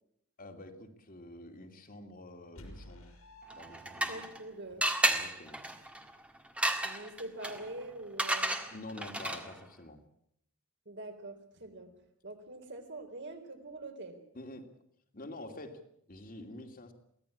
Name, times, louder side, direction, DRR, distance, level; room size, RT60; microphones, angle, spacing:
voice 1, 0.4-3.1 3.5-4.2 4.7-5.6 8.7-10.0 14.3-14.7 15.1-15.8 16.1-16.9, left 1 dB, 40° left, 6 dB, 2.6 m, -47 dB
sound 1, 2.6-4.7, right 1 dB, 75° left, 5.6 m, -52 dB
sound 2, 3.5-4.4 4.8-9.6, right 1 dB, 5° right, 1.7 m, -33 dB
voice 2, 3.9-4.8 6.8-8.7 10.9-11.9 12.2-14.2, right 2 dB, 55° right, 6 dB, 3.8 m, -44 dB
23.5 x 16.5 x 8.6 m, 0.73 s
head